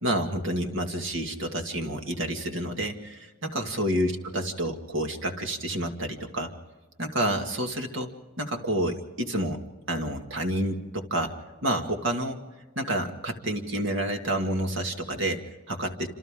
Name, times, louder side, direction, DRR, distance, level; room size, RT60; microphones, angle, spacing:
voice 1, 0.0-6.5 7.0-8.1 8.4-9.6 9.9-11.4 11.6-12.4 12.8-16.1, right 1 dB, 55° right, 4 dB, 2.2 m, -29 dB
27.5 x 27.0 x 3.8 m, 1.2 s
head